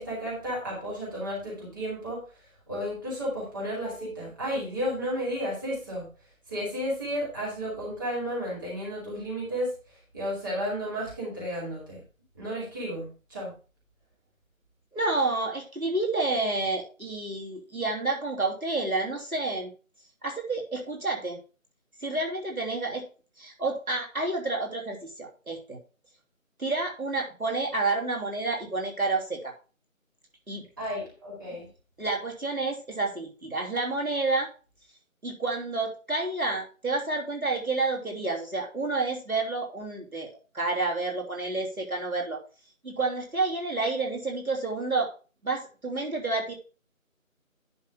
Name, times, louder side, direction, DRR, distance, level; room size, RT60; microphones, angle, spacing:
voice 1, 0.0-2.2 2.7-6.1 6.5-9.7 10.1-12.0 12.4-13.5 30.8-31.7, equal, 15° right, -8 dB, 2.6 m, -32 dB
voice 2, 14.9-19.7 20.2-21.4 22.0-23.1 23.4-25.8 26.6-29.5 30.5-30.6 32.0-34.5 35.2-42.4 42.8-45.1 45.4-46.6, right 3 dB, 85° right, 0 dB, 3.3 m, -29 dB
10.5 x 5.9 x 3.7 m, 0.35 s
figure-of-eight pair, 170°, 41 cm